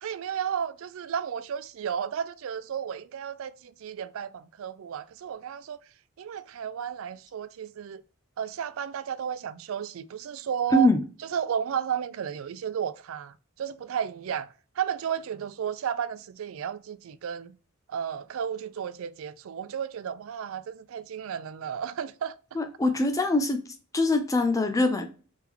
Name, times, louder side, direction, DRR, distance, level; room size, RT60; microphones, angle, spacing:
voice 1, 0.0-5.8 6.2-8.0 8.4-10.9 11.3-14.5 14.8-17.6 17.9-22.3, right 8 dB, 65° right, 0.3 m, -33 dB
voice 2, 22.6-23.6 23.9-25.0, left 1 dB, 15° left, 0.4 m, -23 dB
3.5 x 3.5 x 2.9 m
head